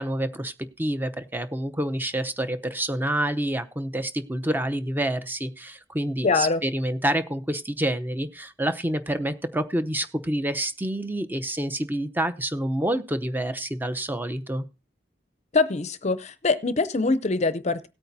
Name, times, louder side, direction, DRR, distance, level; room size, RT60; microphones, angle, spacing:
voice 1, 0.0-14.6, right 1 dB, 10° right, 10 dB, 0.8 m, -28 dB
voice 2, 6.2-6.6 15.5-17.9, left 3 dB, 40° left, 13 dB, 0.6 m, -23 dB
17.5 x 8.8 x 2.7 m, 0.29 s
head